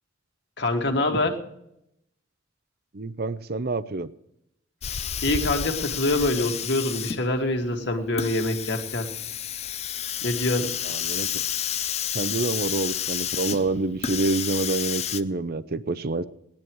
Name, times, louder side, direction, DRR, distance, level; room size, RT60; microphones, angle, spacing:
voice 1, 0.6-1.4 5.2-9.1 10.2-10.7, left 2 dB, 60° left, 3 dB, 2.0 m, -25 dB
voice 2, 2.9-4.1 10.9-11.3 12.1-16.2, right 3 dB, 55° right, 14 dB, 0.7 m, -27 dB
Hiss, 4.8-15.2, left 9 dB, 35° left, 0.5 m, -30 dB
18.0 x 10.5 x 4.7 m, 0.77 s
head